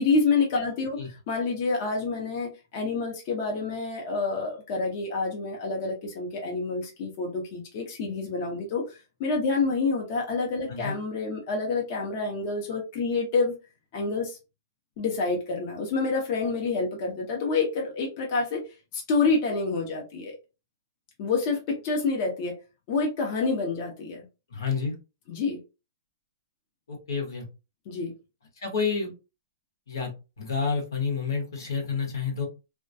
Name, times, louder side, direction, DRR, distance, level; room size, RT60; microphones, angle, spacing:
voice 1, 0.0-1.0 1.3-8.8 9.2-13.5 13.9-14.4 15.0-18.6 18.9-20.4 21.2-22.5 22.9-24.3 25.3-25.6 27.9-28.1, left 4 dB, 40° left, 0.7 m, -28 dB
voice 2, 24.5-24.9 26.9-27.4 28.6-29.1 29.9-32.5, left 5 dB, 85° left, 1.0 m, -29 dB
2.2 x 2.2 x 2.6 m
hypercardioid pair, 150°, 2 cm